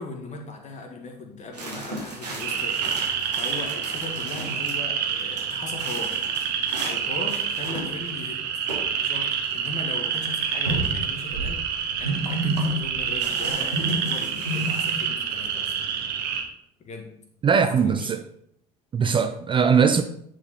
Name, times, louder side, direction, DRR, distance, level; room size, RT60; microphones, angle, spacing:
voice 1, 0.0-2.8 3.1-6.2 6.8-8.4 9.0-15.7 16.8-17.1 17.6-18.1, left 3 dB, 35° left, 1.9 m, -38 dB
sound 1, 1.5-4.7 5.1-7.0 7.3-8.2 8.7-8.9 9.2-9.3 10.1-10.2 10.6-11.1 12.0-12.7 13.2-15.0, right 1 dB, 90° right, 1.7 m, -32 dB
sound 2, 2.4-16.4, right 7 dB, 55° right, 1.5 m, -28 dB
voice 2, 17.4-18.2 18.9-20.0, right 6 dB, 25° right, 0.5 m, -20 dB
9.6 x 4.9 x 4.2 m
figure-of-eight pair, 60°, 20 cm